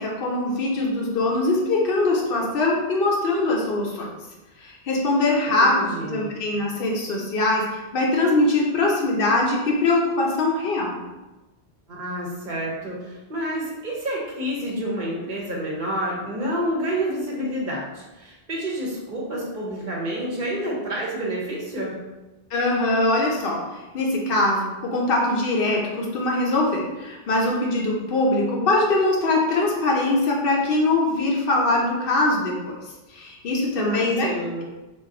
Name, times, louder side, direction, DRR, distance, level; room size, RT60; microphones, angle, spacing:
voice 1, 0.0-4.1 4.6-11.0 22.5-32.8 33.1-34.3, left 2 dB, 65° left, -2 dB, 0.8 m, -22 dB
voice 2, 5.6-6.3 11.9-22.0 33.8-34.6, right 1 dB, 50° right, -4 dB, 0.8 m, -29 dB
2.4 x 2.3 x 3.7 m, 1.1 s
omnidirectional pair, 1.0 m